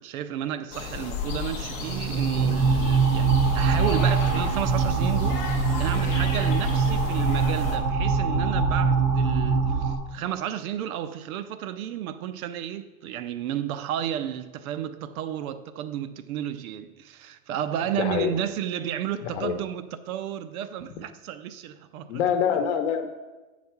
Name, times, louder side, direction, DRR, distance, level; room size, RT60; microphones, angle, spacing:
voice 1, 0.0-22.2 22.5-22.7, right 10 dB, 75° right, 0.7 m, -32 dB
sound 1, 0.7-7.8, left 5 dB, 15° left, 0.5 m, -34 dB
sound 2, 1.6-10.0, right 4 dB, 30° right, 0.5 m, -23 dB
voice 2, 18.0-18.3 19.4-19.5 22.1-23.1, left 8 dB, 50° left, 0.9 m, -25 dB
8.4 x 4.1 x 5.8 m
supercardioid pair, 180°, 43 cm